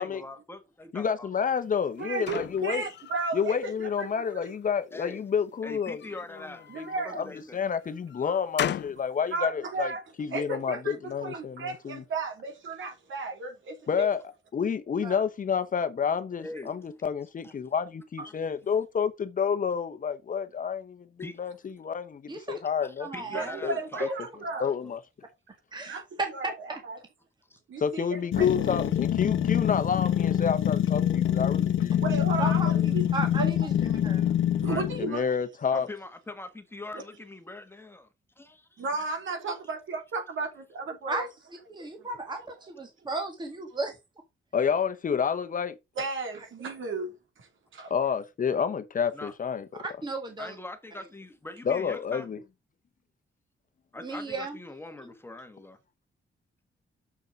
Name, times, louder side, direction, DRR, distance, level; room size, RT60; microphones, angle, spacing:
voice 1, 0.0-1.3 4.9-5.2 5.6-6.7 7.0-7.7 16.4-16.8 17.4-17.5 18.2-18.4 21.2-21.4 22.8-24.1 24.6-25.0 27.5-27.6 34.7-35.3 35.7-38.1 38.4-38.8 49.1-49.3 50.4-52.3 53.9-55.8, left 2 dB, 10° left, 1.5 m, -42 dB
voice 2, 0.9-2.8 3.3-6.0 6.8-6.9 7.2-7.3 7.5-9.9 10.2-12.0 13.9-14.2 14.5-21.1 21.4-23.1 23.6-24.1 24.6-25.0 27.8-32.0 35.0-35.9 44.5-45.7 47.9-49.8 51.6-52.4, left 7 dB, 40° left, 0.9 m, -29 dB
sound 1, 1.6-3.5 4.0-4.7 5.7-7.2 7.7-9.1, left 10 dB, 60° left, 0.5 m, -37 dB
voice 3, 2.0-4.5 6.7-7.2 9.3-10.0 10.3-14.1 23.3-24.6 25.9-26.0 26.3-26.5 26.9-27.0 27.7-28.2 28.7-28.8 32.0-33.0 33.3-33.5 34.6-35.2 38.8-41.3 42.0-42.1 42.4-42.5 46.0-47.1 47.4-47.5 47.7-47.9, right 3 dB, 75° right, 3.0 m, -34 dB
voice 4, 22.3-22.6 23.0-23.6 25.7-26.8 32.4-33.7 34.0-34.4 41.1-41.3 41.7-44.0 50.0-50.6 54.0-54.6, right 3 dB, 20° right, 1.9 m, -34 dB
sound 2, 28.3-35.1, left 10 dB, 80° left, 0.9 m, -25 dB
7.2 x 6.7 x 5.1 m
wide cardioid pair, 150°, 20 cm